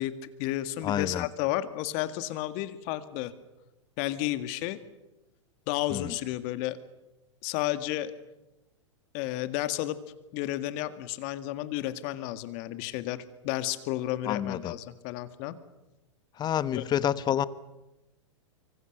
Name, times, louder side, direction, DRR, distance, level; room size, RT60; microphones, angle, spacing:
voice 1, 0.0-3.3 4.0-4.8 5.7-6.8 7.4-8.1 9.1-10.0 10.3-15.6 16.7-16.8, left 15 dB, 45° left, 11 dB, 1.9 m, -32 dB
voice 2, 0.8-1.3 5.9-6.1 14.2-14.8 16.4-17.4, left 10 dB, 25° left, 16 dB, 1.1 m, -28 dB
25.0 x 25.0 x 6.7 m, 0.98 s
hypercardioid pair, 105°, 16 cm